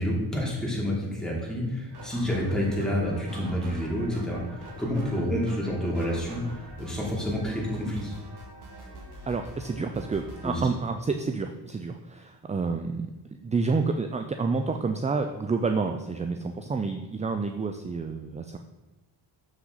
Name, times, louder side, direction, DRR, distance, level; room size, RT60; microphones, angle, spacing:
voice 1, 0.0-4.4 4.8-6.4 6.8-8.1 10.4-10.6, equal, ahead, -4 dB, 2.8 m, -28 dB
sound 1, 1.9-10.6, right 2 dB, 50° right, 2.0 m, -44 dB
voice 2, 9.3-13.1 13.4-18.6, right 4 dB, 15° right, 6 dB, 0.3 m, -29 dB
7.2 x 6.0 x 3.9 m, 1.1 s
cardioid pair, 80°, 50 cm